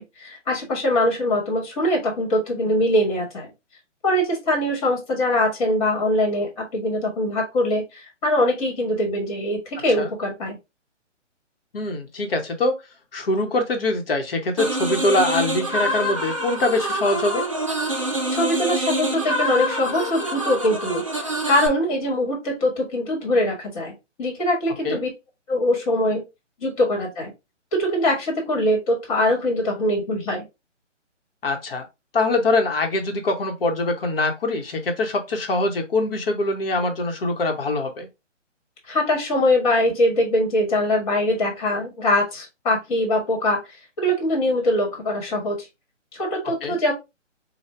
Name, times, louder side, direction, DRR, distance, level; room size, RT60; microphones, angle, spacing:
voice 1, 0.0-3.5 4.0-10.6 18.3-21.0 21.5-23.9 24.2-25.1 25.5-26.2 26.6-27.3 27.7-30.4 38.9-43.6 44.0-45.7 46.1-46.9, left 1 dB, 30° left, 1.4 m, -22 dB
voice 2, 11.7-12.7 13.1-17.5 24.8-25.0 31.4-31.9 32.1-38.1 46.6-46.8, left 2 dB, 50° left, 1.1 m, -23 dB
sound 1, 14.6-21.7, right 1 dB, 30° right, 0.3 m, -26 dB
4.4 x 2.3 x 3.2 m
hypercardioid pair, 155°, 37 cm